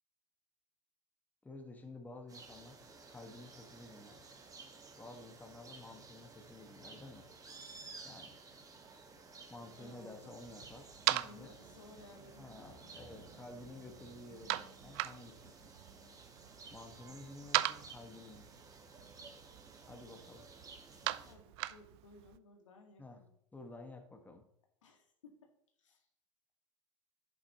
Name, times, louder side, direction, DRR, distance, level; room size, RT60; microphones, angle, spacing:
voice 1, 1.4-2.8 3.1-4.2 5.0-7.3 8.0-8.4 9.5-11.5 12.4-15.7 16.7-18.5 19.9-20.5 23.0-23.2 23.5-24.4, left 2 dB, 10° left, 4 dB, 1.6 m, -52 dB
sound 1, 2.3-21.3, right 4 dB, 20° right, 1.6 m, -55 dB
voice 2, 9.8-10.4 11.1-13.0 21.2-23.3 24.8-25.5 25.8-26.1, left 3 dB, 75° left, 3 dB, 1.9 m, -59 dB
sound 2, 10.4-22.4, right 17 dB, 55° right, 0.5 m, -41 dB
11.0 x 8.2 x 3.0 m, 0.73 s
figure-of-eight pair, 80°, 16 cm